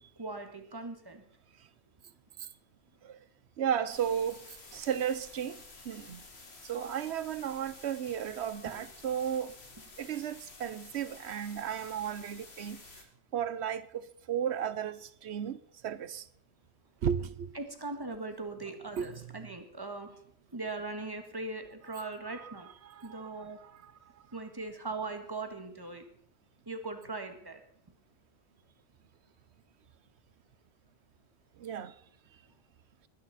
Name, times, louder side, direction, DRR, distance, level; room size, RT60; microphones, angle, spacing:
voice 1, 0.2-1.2 8.6-8.8 17.5-20.2 20.5-22.7 23.0-23.6 24.3-26.0 26.6-27.6, right 3 dB, 20° right, 1.7 m, -40 dB
voice 2, 3.6-4.4 4.7-6.2 6.6-9.5 10.0-12.8 13.3-15.6 15.8-16.2 17.0-17.6 19.0-19.1 21.9-22.5 22.8-23.9 31.6-31.9, right 8 dB, 85° right, 1.1 m, -34 dB
sound 1, 3.9-13.0, left 3 dB, 75° left, 2.2 m, -52 dB
20.5 x 10.5 x 4.2 m
omnidirectional pair, 1.1 m